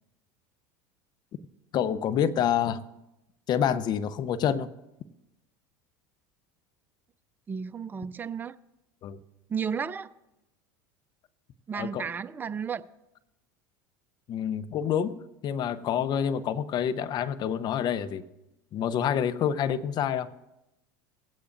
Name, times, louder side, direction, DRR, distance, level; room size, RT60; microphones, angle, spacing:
voice 1, 1.7-2.8 3.5-4.7 9.0-9.2 11.7-12.1 14.3-15.2 15.4-18.2 18.7-20.3, left 9 dB, 45° left, 0.7 m, -27 dB
voice 2, 7.5-8.5 9.5-10.1 11.7-12.8, right 6 dB, 20° right, 0.4 m, -33 dB
18.0 x 8.2 x 2.6 m
hypercardioid pair, 90°, 10 cm